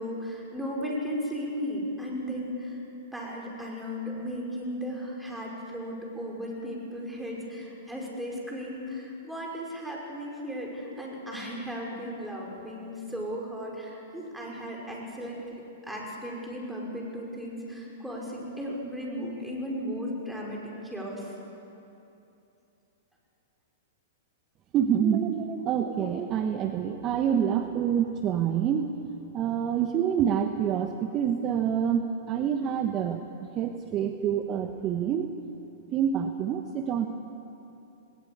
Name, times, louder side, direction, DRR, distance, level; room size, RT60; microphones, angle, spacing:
voice 1, 0.0-2.8 3.1-15.6 15.9-21.3, equal, 5° right, -3 dB, 5.7 m, -35 dB
voice 2, 24.7-28.9 29.3-33.2 33.5-35.3 35.9-37.1, right 8 dB, 35° right, 6 dB, 1.2 m, -27 dB
19.5 x 19.0 x 8.7 m, 2.8 s
hypercardioid pair, 110°, 0 cm